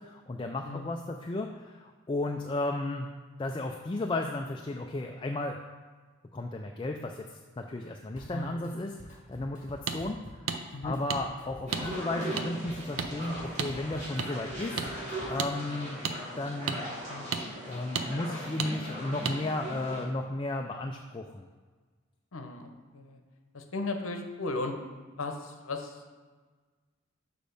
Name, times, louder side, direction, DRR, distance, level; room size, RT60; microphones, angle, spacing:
voice 1, 0.0-3.1 3.4-5.6 6.3-14.8 15.3-16.0 16.4-16.9 17.6-21.5, left 2 dB, 20° left, 3 dB, 0.3 m, -34 dB
voice 2, 0.6-1.0 8.3-8.7 10.7-11.0 17.1-17.4 22.3-23.2 23.5-24.8 25.2-26.1, left 2 dB, 75° left, 5 dB, 0.8 m, -36 dB
Drum kit, 8.2-8.7 9.0-15.5, left 1 dB, 40° left, 1.8 m, -49 dB
sound 1, 9.9-10.0 10.5-10.6 11.1-11.2 11.7-11.8 12.4-12.5 13.0-13.1 13.6-13.7 14.2-14.3 14.8-14.9 15.4-15.5 16.0-16.2 16.7-16.8 17.3-17.4 17.9-18.1 18.6-18.7 19.2-19.4, right 6 dB, 80° right, 0.5 m, -31 dB
sound 2, 11.7-20.0, equal, 30° right, 2.5 m, -39 dB
6.7 x 5.1 x 5.2 m, 1.4 s
head